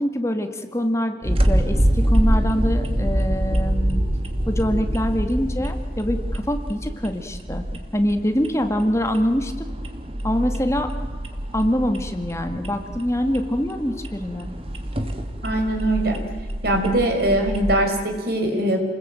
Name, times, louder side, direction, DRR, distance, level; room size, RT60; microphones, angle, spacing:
voice 1, 0.0-4.0 4.5-7.6 7.9-9.7 10.2-10.9 11.5-14.5, equal, 15° left, 6 dB, 2.0 m, -24 dB
sound 1, 1.2-17.8, equal, 35° right, 2.5 m, -25 dB
voice 2, 15.4-16.2 16.6-18.8, right 1 dB, 60° right, 3 dB, 5.9 m, -21 dB
30.0 x 21.0 x 9.2 m, 1.5 s
head